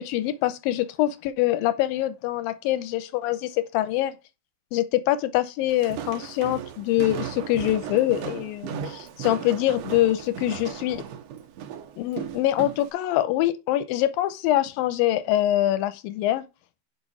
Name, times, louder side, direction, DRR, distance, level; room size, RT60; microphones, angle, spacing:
voice 1, 0.0-4.1 4.7-11.0 12.0-16.4, left 14 dB, 90° left, 2.4 m, -24 dB
Walk footsteps, 5.7-12.9, right 8 dB, 85° right, 1.4 m, -36 dB
6.2 x 5.3 x 6.0 m
omnidirectional pair, 4.1 m